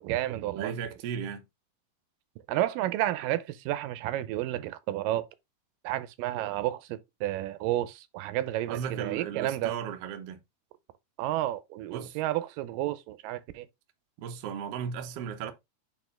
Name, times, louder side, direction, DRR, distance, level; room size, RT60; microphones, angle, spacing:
voice 1, 0.0-0.7 2.5-5.3 5.8-9.7 11.2-13.7, right 14 dB, 85° right, 2.3 m, -31 dB
voice 2, 0.5-1.5 8.7-10.4 11.9-12.2 14.2-15.5, right 7 dB, 70° right, 1.5 m, -35 dB
8.3 x 3.6 x 3.2 m
omnidirectional pair, 3.8 m